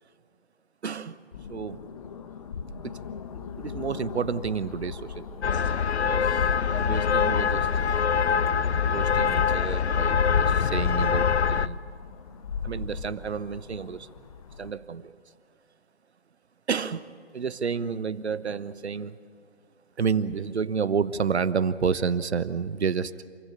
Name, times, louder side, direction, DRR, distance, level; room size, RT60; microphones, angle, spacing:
voice 1, 0.8-1.2 1.5-1.8 2.8-3.0 3.6-5.4 6.0-7.7 8.8-11.8 12.6-14.1 14.6-15.1 16.7-19.2 20.0-23.3, right 6 dB, 70° right, 15 dB, 1.1 m, -30 dB
sound 1, 1.3-14.7, left 6 dB, 30° left, 0.9 m, -40 dB
sound 2, 5.4-11.7, left 6 dB, 70° left, 0.7 m, -24 dB
28.0 x 15.5 x 8.5 m, 2.2 s
figure-of-eight pair, 145°, 35 cm